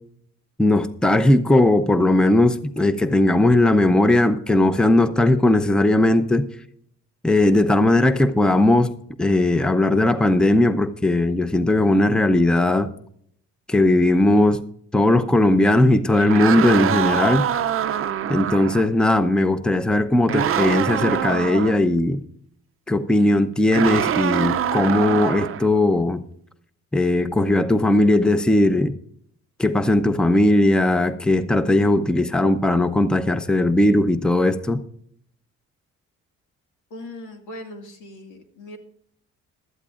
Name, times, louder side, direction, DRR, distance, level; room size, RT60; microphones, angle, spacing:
voice 1, 0.6-6.5 7.2-8.9 9.2-12.9 13.7-14.6 14.9-17.5 18.3-22.2 22.9-26.2 26.9-29.0 29.6-34.8, left 1 dB, 5° left, 12 dB, 0.7 m, -18 dB
sound 1, 16.1-18.9 20.3-21.8 23.7-25.7, right 9 dB, 45° right, 0.6 m, -24 dB
voice 2, 36.9-38.8, left 1 dB, 85° left, 4 dB, 2.1 m, -39 dB
17.5 x 12.5 x 2.5 m, 0.66 s
cardioid pair, 90°, 30 cm